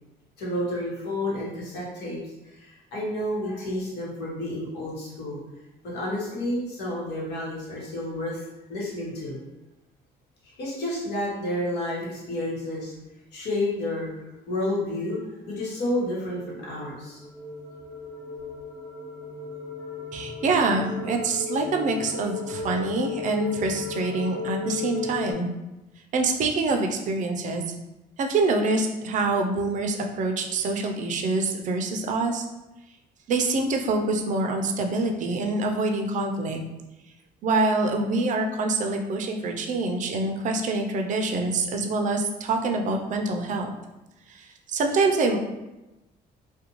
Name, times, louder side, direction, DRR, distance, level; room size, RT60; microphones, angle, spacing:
voice 1, 0.4-2.2 2.5-5.4 5.9-8.4 8.7-9.4 10.4-12.9 13.3-14.1 14.5-15.2 15.5-17.2, left 1 dB, 80° left, -6 dB, 1.1 m, -30 dB
sound 1, 15.8-25.3, left 4 dB, 15° left, 0.5 m, -35 dB
voice 2, 20.1-25.5 26.1-27.6 28.2-32.4 33.3-36.6 37.4-43.7 44.3-45.4, right 3 dB, 50° right, 3 dB, 0.4 m, -25 dB
2.5 x 2.2 x 2.9 m, 0.99 s
cardioid pair, 110°, 17 cm